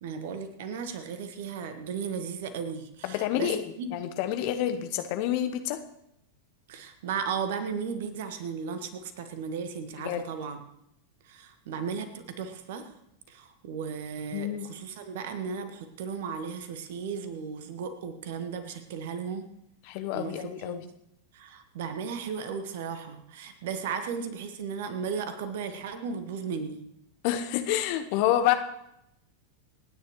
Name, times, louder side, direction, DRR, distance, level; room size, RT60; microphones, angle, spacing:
voice 1, 0.0-3.9 6.7-10.6 11.3-12.9 13.3-19.5 20.1-20.9 21.3-26.8, right 6 dB, 55° right, 9 dB, 1.5 m, -35 dB
voice 2, 3.0-5.8 10.0-10.2 14.3-14.7 19.9-20.8 27.2-28.5, left 12 dB, 45° left, 8 dB, 1.0 m, -28 dB
27.5 x 9.7 x 3.2 m, 0.79 s
figure-of-eight pair, 90°, 0 cm